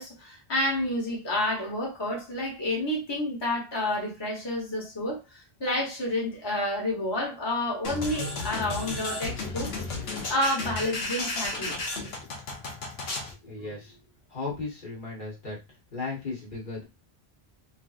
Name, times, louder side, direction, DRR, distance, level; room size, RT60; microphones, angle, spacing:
voice 1, 0.0-9.7 10.3-11.9, left 1 dB, 25° left, 1.0 m, -29 dB
sound 1, 7.8-13.3, left 3 dB, 80° left, 1.0 m, -33 dB
voice 2, 13.4-14.0 14.3-15.6 15.9-16.8, left 3 dB, 55° left, 1.2 m, -35 dB
3.4 x 2.8 x 2.4 m
omnidirectional pair, 1.0 m